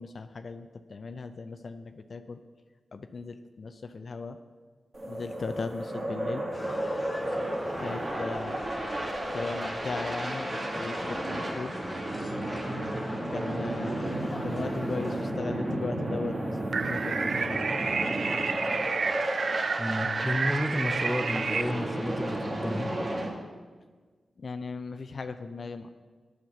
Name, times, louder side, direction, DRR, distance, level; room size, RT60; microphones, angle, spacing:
voice 1, 0.0-2.4 2.9-4.4 5.1-6.4 7.8-8.6 9.3-11.7 13.3-14.0 14.4-16.4 16.9-17.6 24.4-25.9, left 4 dB, 60° left, 9 dB, 0.5 m, -37 dB
sound 1, 4.9-23.3, right 1 dB, 50° right, 1.9 m, -33 dB
sound 2, 6.5-15.3, left 1 dB, 30° left, 1.1 m, -40 dB
sound 3, 16.7-21.6, right 5 dB, 65° right, 0.3 m, -30 dB
voice 2, 19.8-22.9, equal, 5° left, 7 dB, 0.9 m, -31 dB
7.8 x 6.6 x 7.1 m, 1.4 s
cardioid pair, 45°, 0 cm